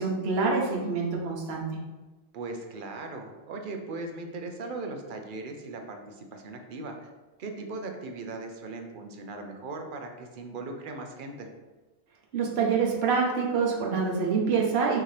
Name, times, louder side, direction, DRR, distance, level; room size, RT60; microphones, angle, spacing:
voice 1, 0.0-1.8 12.3-15.0, right 5 dB, 80° right, -1 dB, 1.1 m, -26 dB
voice 2, 2.3-6.9 7.4-11.5, right 3 dB, 60° right, 4 dB, 0.7 m, -38 dB
5.7 x 2.8 x 3.2 m, 1.2 s
omnidirectional pair, 1.1 m